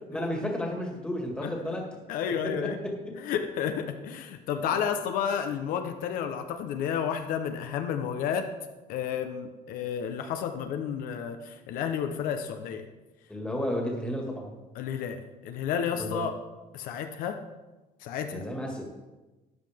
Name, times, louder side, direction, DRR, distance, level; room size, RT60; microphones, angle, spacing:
voice 1, 0.1-1.9 2.3-2.9 4.7-4.8 13.3-14.6 16.0-16.2 18.3-18.8, left 1 dB, 5° left, 0 dB, 1.9 m, -32 dB
voice 2, 2.1-2.8 3.1-8.5 8.9-12.8 14.8-16.3 16.7-17.4 18.0-18.4, left 8 dB, 70° left, 6 dB, 0.9 m, -31 dB
13.0 x 9.8 x 3.6 m, 1.1 s
cardioid pair, 160°, 15 cm